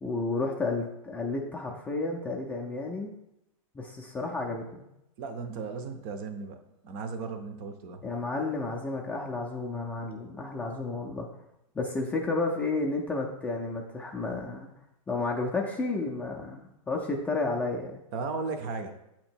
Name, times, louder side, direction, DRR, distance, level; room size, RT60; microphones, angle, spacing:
voice 1, 0.0-3.1 3.7-4.8 8.0-11.3 11.7-14.7 15.1-18.0, left 3 dB, 10° left, -1 dB, 0.4 m, -31 dB
voice 2, 5.2-6.6 6.8-8.0 18.1-18.9, right 4 dB, 40° right, 7 dB, 0.6 m, -35 dB
7.8 x 2.9 x 4.4 m, 0.86 s
hypercardioid pair, 145°, 18 cm